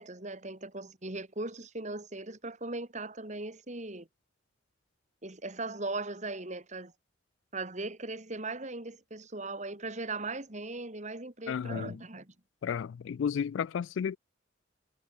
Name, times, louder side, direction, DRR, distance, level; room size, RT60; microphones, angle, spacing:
voice 1, 0.0-4.1 5.2-6.9 7.5-12.3, right 2 dB, 35° right, 2.5 m, -38 dB
voice 2, 11.5-12.0 12.6-14.2, left 7 dB, 70° left, 0.3 m, -32 dB
head